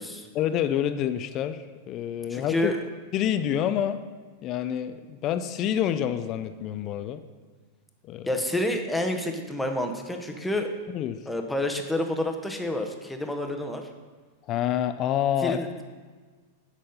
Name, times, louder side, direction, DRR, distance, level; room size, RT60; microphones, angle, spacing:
voice 1, 0.3-2.7 3.1-4.0 4.4-7.2 8.1-8.3 10.9-11.2 14.5-15.8, left 10 dB, 40° left, 11 dB, 0.4 m, -27 dB
voice 2, 2.3-2.8 8.3-10.7 11.3-13.9 15.4-15.7, left 1 dB, 5° left, 4 dB, 0.9 m, -29 dB
10.0 x 4.2 x 5.4 m, 1.4 s
hypercardioid pair, 120°, 0 cm